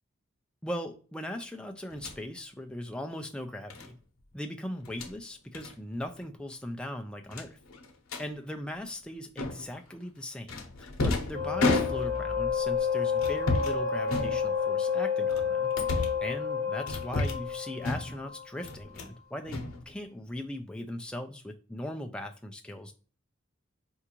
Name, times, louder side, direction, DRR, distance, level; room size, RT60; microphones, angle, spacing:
voice 1, 0.6-4.0 4.3-7.6 8.2-22.9, left 1 dB, 5° left, 0.3 m, -39 dB
sound 1, 1.9-2.2 3.7-3.9 4.8-5.1 5.5-5.7 6.0-6.2 6.5-6.6 7.3-8.3 9.4-9.8 10.5-12.3 13.2-13.8 14.1-14.8 15.3-16.2 16.9-17.5 17.8-18.3 18.6-19.2 19.5-20.3, left 2 dB, 85° left, 0.8 m, -32 dB
sound 2, 11.3-18.6, left 6 dB, 90° right, 1.4 m, -30 dB
4.5 x 2.5 x 2.9 m
head